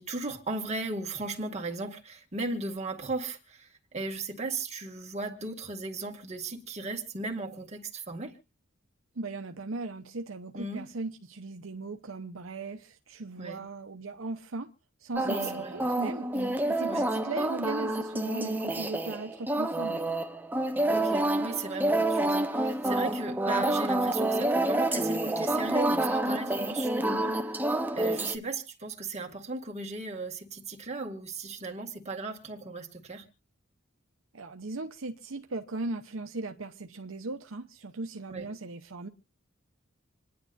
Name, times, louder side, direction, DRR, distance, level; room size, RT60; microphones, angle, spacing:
voice 1, 0.0-8.4 10.5-10.9 13.4-13.6 15.2-15.9 16.3-16.6 16.9-17.1 20.9-33.2 38.3-38.5, right 3 dB, 35° right, 2.1 m, -36 dB
voice 2, 9.2-14.7 15.0-16.3 16.7-20.1 34.3-39.1, right 3 dB, 75° right, 0.9 m, -38 dB
sound 1, 15.1-28.3, right 1 dB, 10° right, 0.8 m, -28 dB
27.0 x 10.5 x 2.6 m
head